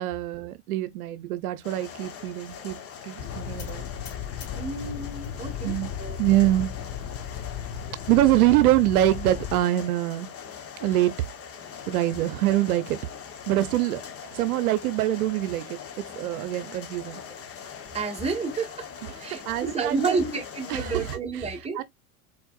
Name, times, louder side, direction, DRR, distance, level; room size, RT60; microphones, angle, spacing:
voice 1, 0.0-3.8 5.6-5.9 6.2-6.7 8.1-10.3 10.8-11.1 11.9-13.0 13.5-14.0 14.3-17.2 19.3-20.2 20.7-21.8, right 15 dB, 75° right, 0.8 m, -24 dB
sound 1, 1.6-21.2, left 7 dB, 30° left, 1.1 m, -42 dB
sound 2, 3.2-9.6, left 9 dB, 50° left, 0.8 m, -35 dB
sound 3, 3.6-5.4 5.8-6.4 6.9-7.1 7.3-7.4 7.8-7.9 9.0-9.7, left 6 dB, 80° left, 3.2 m, -50 dB
voice 2, 4.5-6.2 17.9-18.9 19.2-21.8, right 4 dB, 15° right, 1.7 m, -30 dB
4.4 x 4.4 x 2.5 m
hypercardioid pair, 95°, 44 cm